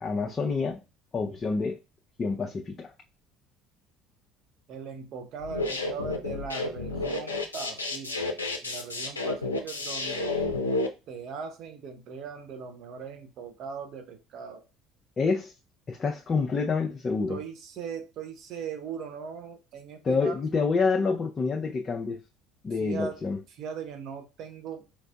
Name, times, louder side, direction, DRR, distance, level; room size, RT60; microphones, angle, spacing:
voice 1, 0.0-0.8 1.1-1.8 2.2-2.9 15.2-15.5 15.9-17.4 20.0-22.2 22.6-23.4, left 4 dB, 30° left, 0.5 m, -27 dB
voice 2, 4.7-8.3 8.6-10.3 11.1-14.6 17.3-20.3 22.8-23.2 23.6-24.8, right 6 dB, 55° right, 0.8 m, -39 dB
sound 1, 5.4-10.9, left 2 dB, 90° left, 0.4 m, -31 dB
4.5 x 2.5 x 2.2 m
figure-of-eight pair, 60°, 0 cm